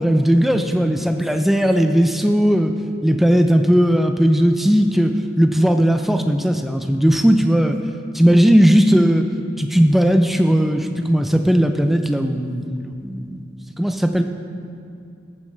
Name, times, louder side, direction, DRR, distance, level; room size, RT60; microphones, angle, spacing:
voice 1, 0.0-2.7 3.0-5.1 5.4-7.8 8.1-9.2 9.6-13.4 13.8-14.2, equal, ahead, 6 dB, 0.4 m, -17 dB
14.5 x 8.5 x 3.3 m, 2.4 s
head